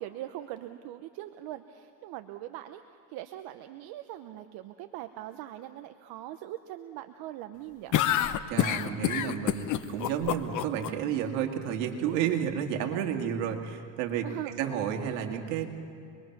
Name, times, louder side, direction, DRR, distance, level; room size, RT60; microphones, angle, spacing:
voice 1, 0.0-2.8 3.1-7.9 14.2-14.6, right 14 dB, 65° right, 8 dB, 0.9 m, -41 dB
sound 1, 7.9-10.9, left 11 dB, 45° left, 1.0 m, -27 dB
voice 2, 8.5-14.3 14.6-15.7, right 9 dB, 80° right, 4 dB, 2.4 m, -31 dB
25.5 x 22.0 x 6.0 m, 2.8 s
supercardioid pair, 115°, 41 cm